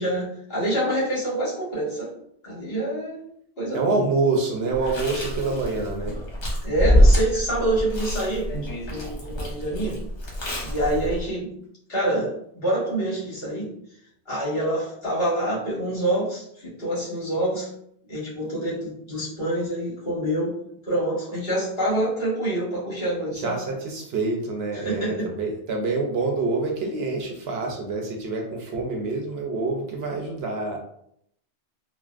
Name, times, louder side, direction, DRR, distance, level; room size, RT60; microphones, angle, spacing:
voice 1, 0.0-2.1 2.4-3.2 3.6-4.0 6.6-8.5 8.9-10.0 10.6-11.5 11.9-13.7 14.3-17.7 18.1-20.6 20.9-23.6 24.7-25.3, right 1 dB, 55° left, -9 dB, 1.7 m, -26 dB
voice 2, 3.7-6.2 23.4-30.8, right 3 dB, 65° right, 0 dB, 0.8 m, -26 dB
Chewing mastication, 4.7-11.3, equal, 80° left, 1.2 m, -24 dB
3.4 x 2.2 x 2.4 m, 0.71 s
omnidirectional pair, 1.2 m